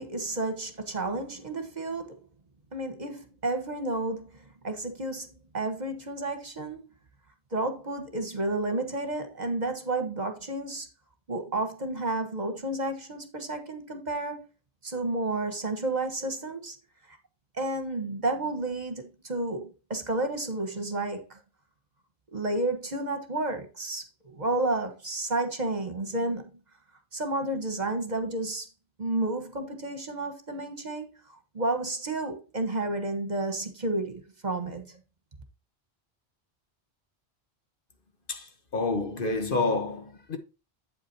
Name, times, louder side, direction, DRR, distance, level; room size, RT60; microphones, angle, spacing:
voice 1, 0.0-2.3 2.7-5.3 5.5-6.8 7.5-10.9 11.3-14.5 14.8-16.8 17.1-17.2 17.6-21.4 22.3-26.5 27.1-28.7 29.0-31.0 31.5-35.0, right 2 dB, 40° right, 1.4 m, -31 dB
voice 2, 38.7-40.4, left 3 dB, 55° left, 1.4 m, -28 dB
8.7 x 8.3 x 2.8 m
omnidirectional pair, 1.1 m